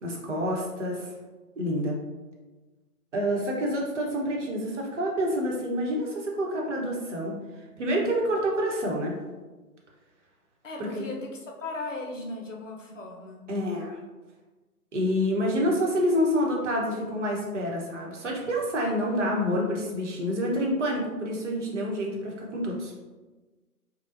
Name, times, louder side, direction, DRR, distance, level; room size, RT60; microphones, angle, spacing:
voice 1, 0.0-1.1 1.6-2.0 3.1-7.4 7.8-9.1 10.8-11.0 13.5-14.0 14.9-22.9, equal, 50° right, -1 dB, 1.0 m, -28 dB
voice 2, 10.6-13.5, left 2 dB, 55° left, 1 dB, 0.7 m, -37 dB
5.4 x 2.3 x 2.5 m, 1.2 s
figure-of-eight pair, 145°, 46 cm